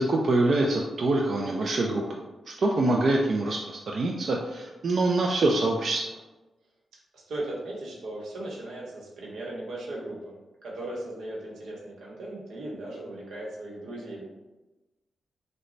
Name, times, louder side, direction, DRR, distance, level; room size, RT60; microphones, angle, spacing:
voice 1, 0.0-2.2 2.5-6.1, right 2 dB, 45° right, -1 dB, 0.3 m, -25 dB
voice 2, 7.1-10.3 10.6-14.3, right 1 dB, 80° right, -3 dB, 0.9 m, -37 dB
3.0 x 2.1 x 3.8 m, 1.1 s
wide cardioid pair, 150°, 0 cm